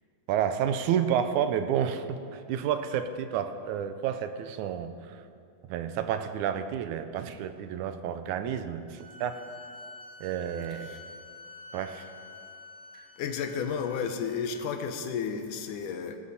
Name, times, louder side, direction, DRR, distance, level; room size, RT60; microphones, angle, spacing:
voice 1, 0.3-2.0 2.3-4.9 5.7-9.4 10.2-11.0 11.7-12.0, right 9 dB, 80° right, 10 dB, 2.0 m, -30 dB
sound 1, 8.9-14.6, left 2 dB, 30° left, 3.7 m, -48 dB
voice 2, 13.2-16.2, left 6 dB, 85° left, 7 dB, 2.4 m, -32 dB
18.0 x 12.5 x 4.2 m, 2.3 s
omnidirectional pair, 3.6 m